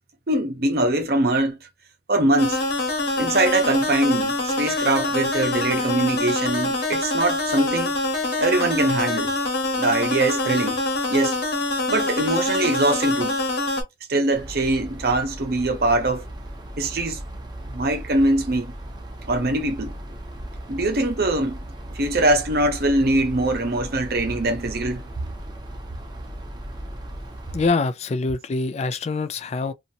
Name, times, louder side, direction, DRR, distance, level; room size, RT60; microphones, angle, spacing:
voice 1, 0.3-1.6 2.1-2.6 3.2-7.9 8.4-9.3 9.8-10.8 11.1-11.4 11.9-13.4 14.1-16.2 16.8-17.2 17.7-18.7 19.3-19.9 20.7-21.6 21.9-25.0, right 2 dB, 55° right, 0.8 m, -22 dB
sound 1, 2.4-13.8, left 2 dB, 60° left, 1.2 m, -25 dB
sound 2, 14.3-27.7, right 1 dB, 25° right, 0.6 m, -37 dB
voice 2, 27.5-29.7, left 3 dB, 35° left, 0.3 m, -24 dB
2.8 x 2.5 x 2.7 m
head